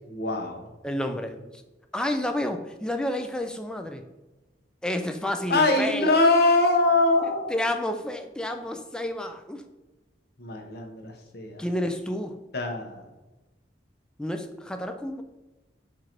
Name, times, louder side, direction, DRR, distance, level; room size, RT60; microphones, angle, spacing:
voice 1, 0.1-0.7 5.5-7.6 10.4-11.6 12.5-13.0, left 2 dB, 60° left, 3 dB, 0.8 m, -23 dB
voice 2, 0.8-1.4 1.9-4.0 4.8-6.1 7.5-9.6 11.6-12.4 14.2-15.2, left 1 dB, 5° left, 5 dB, 0.3 m, -30 dB
4.6 x 2.5 x 4.3 m, 1.1 s
head